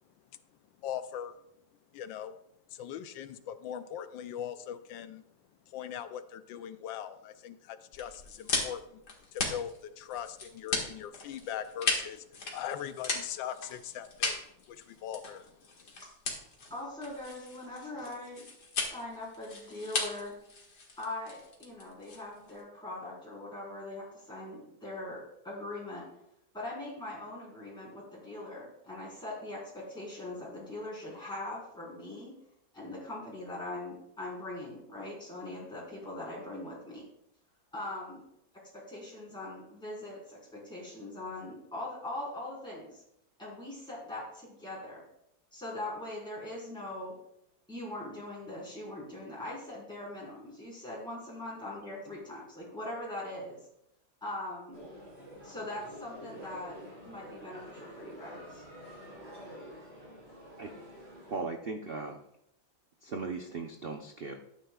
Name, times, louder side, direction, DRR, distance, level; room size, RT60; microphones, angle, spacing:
voice 1, 0.8-1.3 1.9-2.3 2.7-5.2 5.7-9.0 9.3-15.7, left 9 dB, 85° left, 11 dB, 1.3 m, -40 dB
sound 1, 7.9-22.6, left 3 dB, 60° left, 2.3 m, -37 dB
voice 2, 16.3-18.5 18.8-20.3 21.0-26.1 26.5-32.3 32.7-37.0 37.7-38.2 38.7-43.0 43.4-45.0 45.5-47.2 47.7-53.6 54.2-54.8 55.4-56.8 57.1-58.6, left 1 dB, ahead, -7 dB, 4.0 m, -41 dB
sound 2, 54.7-61.4, equal, 40° right, 3.7 m, -48 dB
voice 3, 61.3-62.2 63.0-64.3, right 4 dB, 75° right, 3 dB, 0.5 m, -37 dB
13.0 x 9.2 x 2.3 m, 0.77 s
omnidirectional pair, 2.0 m